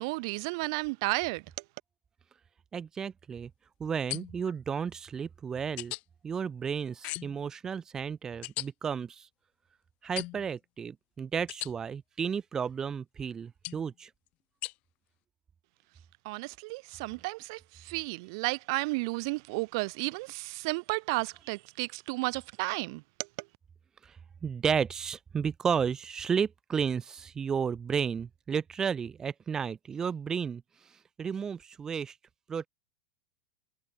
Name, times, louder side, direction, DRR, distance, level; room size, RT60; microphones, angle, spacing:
voice 1, 0.0-1.4 16.2-23.0, right 26 dB, 60° right, 2.0 m, -33 dB
voice 2, 2.7-3.5 3.8-5.9 6.2-9.3 10.0-14.1 24.0-24.2 24.4-30.6 31.2-32.2 32.5-32.7, right 7 dB, 20° right, 2.2 m, -32 dB
sound 1, 4.1-4.5 5.8-6.0 7.0-7.4 8.4-8.7 10.2-10.5 11.5-11.7 13.6-13.9 14.6-14.7, left 22 dB, 50° left, 5.9 m, -37 dB
supercardioid pair, 125°, 3 cm